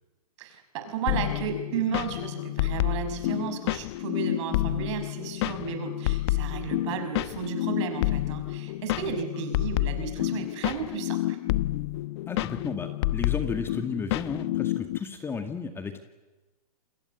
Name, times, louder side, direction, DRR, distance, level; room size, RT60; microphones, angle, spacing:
voice 1, 0.4-11.4, right 8 dB, 50° right, 8 dB, 6.1 m, -34 dB
sound 1, 1.1-15.0, left 17 dB, 45° left, 1.0 m, -29 dB
voice 2, 12.3-16.0, left 5 dB, 10° left, 7 dB, 2.0 m, -33 dB
29.0 x 21.5 x 8.3 m, 1.1 s
hypercardioid pair, 140°, 20 cm